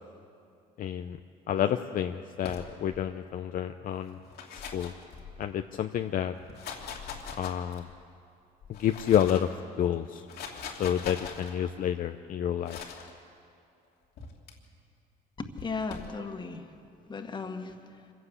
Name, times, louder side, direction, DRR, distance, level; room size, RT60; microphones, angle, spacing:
voice 1, 0.8-1.2 1.5-4.2 4.5-4.9 5.4-6.3 7.4-7.9 8.7-9.5 9.8-10.2 10.8-12.8, left 10 dB, 55° left, 7 dB, 0.7 m, -29 dB
sound 1, 2.4-3.1 4.1-5.6 6.4-8.0 8.6-9.6 10.1-11.5 12.7-13.1 14.2-14.5 15.6-16.2, left 6 dB, 75° left, 2.8 m, -42 dB
voice 2, 15.4-16.8 17.1-18.1, left 4 dB, 25° left, 5 dB, 1.9 m, -37 dB
25.5 x 16.0 x 8.2 m, 2.4 s
cardioid pair, 110°, 17 cm